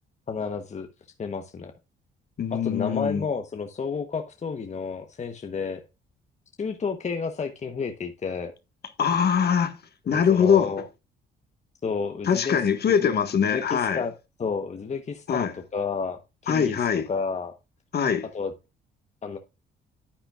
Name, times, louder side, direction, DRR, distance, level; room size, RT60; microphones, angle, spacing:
voice 1, 0.3-0.9 1.2-1.7 2.5-5.8 6.6-8.5 10.1-10.9 11.8-12.6 12.9-13.1 13.4-17.5 18.3-18.5 19.2-19.4, left 5 dB, 35° left, 0.9 m, -31 dB
voice 2, 2.4-3.2 9.0-9.8 10.1-10.7 12.2-14.0 15.3-15.5 16.5-17.1 17.9-18.3, left 7 dB, 55° left, 1.5 m, -22 dB
10.0 x 8.8 x 2.3 m
cardioid pair, 90°, 20 cm